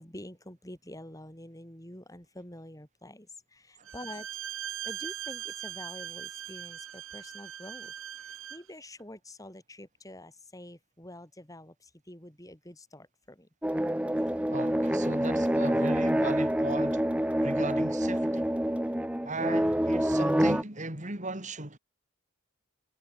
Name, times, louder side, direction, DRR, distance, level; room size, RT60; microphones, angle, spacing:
voice 1, 0.0-4.3 4.8-7.9 8.2-13.5, left 1 dB, 15° left, 7.5 m, -47 dB
Bowed string instrument, 3.8-8.7, right 10 dB, 65° right, 4.0 m, -40 dB
sound 1, 13.6-20.6, equal, 5° right, 0.9 m, -27 dB
voice 2, 14.5-17.0 17.4-18.5 19.2-21.8, right 2 dB, 35° right, 3.4 m, -37 dB
head